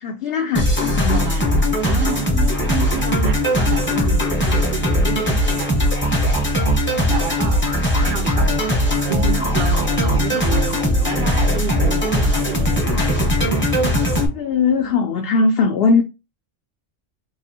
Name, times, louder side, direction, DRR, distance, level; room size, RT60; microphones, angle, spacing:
voice 1, 0.0-1.2 3.9-4.1 12.9-13.1 14.3-16.0, left 4 dB, 60° left, 0.7 m, -20 dB
sound 1, 0.5-14.3, equal, 10° left, 0.6 m, -19 dB
voice 2, 1.1-1.5 1.8-6.7 7.1-7.6 8.0-13.1, right 6 dB, 55° right, 0.8 m, -30 dB
sound 2, 7.5-14.9, right 6 dB, 85° right, 1.0 m, -34 dB
3.9 x 2.5 x 2.7 m
omnidirectional pair, 1.3 m